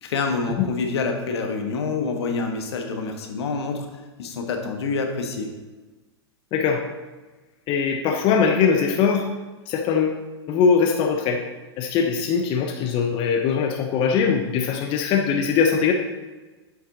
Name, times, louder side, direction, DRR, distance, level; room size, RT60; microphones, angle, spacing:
voice 1, 0.0-3.9 4.2-5.5, left 4 dB, 70° left, 4 dB, 1.2 m, -27 dB
voice 2, 6.5-6.8 7.7-9.3 9.7-10.2 10.5-11.4 11.8-15.9, left 6 dB, 40° left, 3 dB, 0.8 m, -21 dB
7.5 x 5.5 x 3.8 m, 1.2 s
hypercardioid pair, 110°, 14 cm